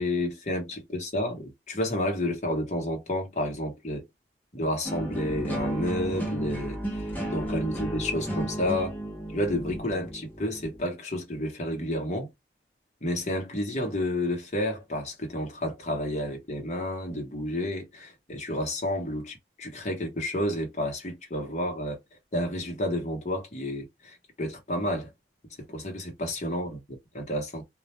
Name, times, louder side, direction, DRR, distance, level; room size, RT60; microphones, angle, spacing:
voice 1, 0.0-4.1 4.5-8.9 9.3-12.3 13.0-22.0 22.3-25.1 25.7-26.8 27.1-27.6, left 1 dB, 40° left, 0.9 m, -30 dB
sound 1, 4.8-10.9, right 1 dB, 10° left, 0.7 m, -33 dB
2.4 x 2.0 x 3.0 m
head